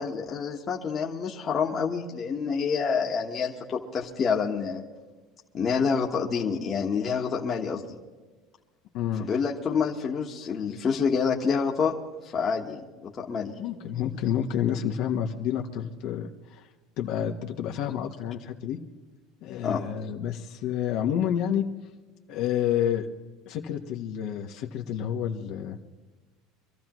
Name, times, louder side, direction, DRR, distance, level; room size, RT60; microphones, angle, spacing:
voice 1, 0.0-4.8 5.5-7.8 9.2-11.9 12.3-13.5 19.6-19.8, left 6 dB, 30° left, -2 dB, 1.4 m, -27 dB
voice 2, 8.9-9.3 13.6-16.7 17.0-18.8 19.4-21.7 22.3-23.1 23.5-25.8, left 9 dB, 60° left, 2 dB, 1.2 m, -29 dB
25.5 x 14.0 x 3.1 m, 1.3 s
cardioid pair, 150°, 0 cm